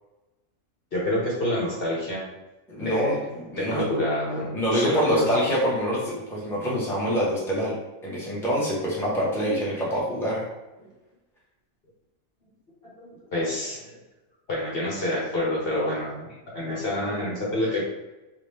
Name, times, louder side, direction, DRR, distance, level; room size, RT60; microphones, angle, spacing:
voice 1, 0.9-2.2 2.8-3.3 3.6-5.3 10.8-10.9 13.0-14.0 14.5-16.3 16.5-17.8, left 1 dB, 45° left, -5 dB, 1.3 m, -27 dB
voice 2, 2.7-3.8 4.5-7.7 8.0-10.4, equal, ahead, -6 dB, 1.0 m, -26 dB
4.9 x 2.5 x 3.4 m, 1.1 s
omnidirectional pair, 1.4 m